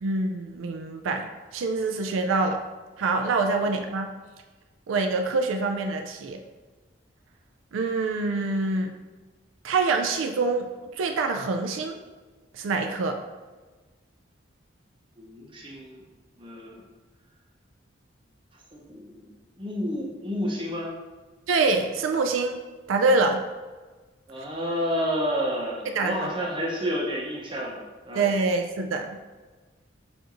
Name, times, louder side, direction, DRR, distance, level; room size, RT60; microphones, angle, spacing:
voice 1, 0.0-2.6 3.0-4.1 4.9-6.4 7.7-8.9 9.6-10.7 10.9-12.0 12.5-13.2 21.5-22.6 22.9-23.4 25.9-26.3 28.1-29.2, right 3 dB, 90° right, 4 dB, 0.4 m, -25 dB
voice 2, 15.2-16.0 16.4-16.8 18.7-20.9 24.3-28.3, equal, 25° right, -2 dB, 0.7 m, -30 dB
7.0 x 2.6 x 2.9 m, 1.3 s
head